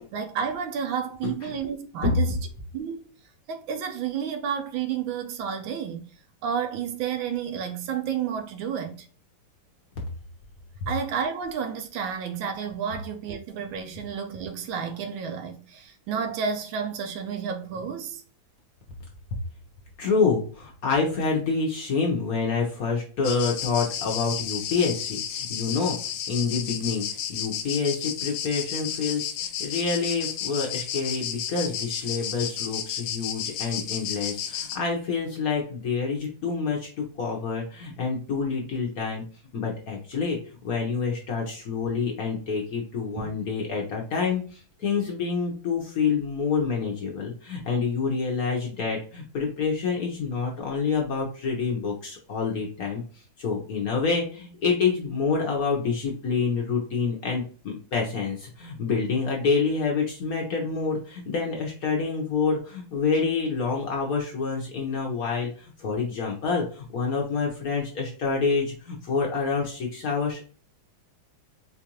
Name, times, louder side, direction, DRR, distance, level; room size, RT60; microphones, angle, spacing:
voice 1, 0.1-2.4 2.7-3.0 3.5-6.1 6.4-9.0 10.9-18.2 43.2-43.3, right 7 dB, 75° right, 1.4 m, -31 dB
voice 2, 1.2-1.6 2.0-2.2 20.0-26.0 26.3-27.0 27.3-39.2 39.5-40.4 40.6-53.0 53.4-70.5, left 5 dB, 60° left, 1.0 m, -27 dB
sound 1, 23.2-34.8, left 9 dB, 80° left, 1.4 m, -32 dB
4.5 x 2.5 x 2.9 m
omnidirectional pair, 2.2 m